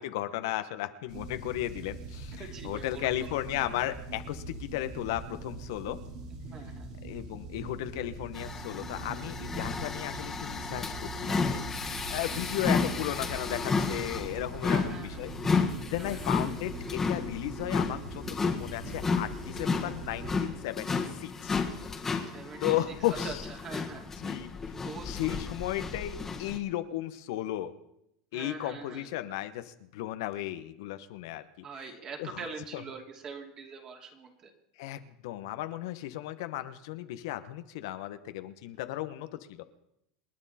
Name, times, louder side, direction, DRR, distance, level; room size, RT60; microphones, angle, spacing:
voice 1, 0.0-6.0 7.0-11.6 12.1-15.7 15.9-21.6 22.6-23.4 24.2-24.5 25.0-27.7 28.3-31.9 32.2-32.4 32.7-32.8 34.8-39.6, left 14 dB, 75° left, 10 dB, 1.1 m, -35 dB
sound 1, 1.1-20.4, right 2 dB, 65° right, 4.0 m, -42 dB
voice 2, 2.4-3.3 6.4-6.9 14.7-15.3 16.0-16.3 22.3-22.6 23.2-24.1 24.8-25.4 28.3-29.1 31.6-34.5, right 5 dB, 35° right, 3 dB, 2.7 m, -43 dB
sound 2, 8.3-26.6, left 4 dB, 15° left, 1.7 m, -32 dB
27.5 x 9.9 x 4.3 m, 0.81 s
supercardioid pair, 135°, 2 cm